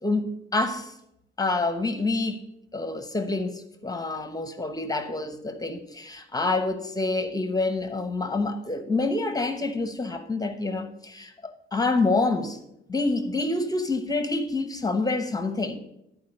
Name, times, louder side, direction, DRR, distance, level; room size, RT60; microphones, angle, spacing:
voice 1, 0.0-0.9 1.4-2.4 2.7-12.6 12.9-15.8, left 3 dB, 20° left, 1.0 m, -27 dB
12.5 x 4.8 x 6.6 m
cardioid pair, 90°, 20 cm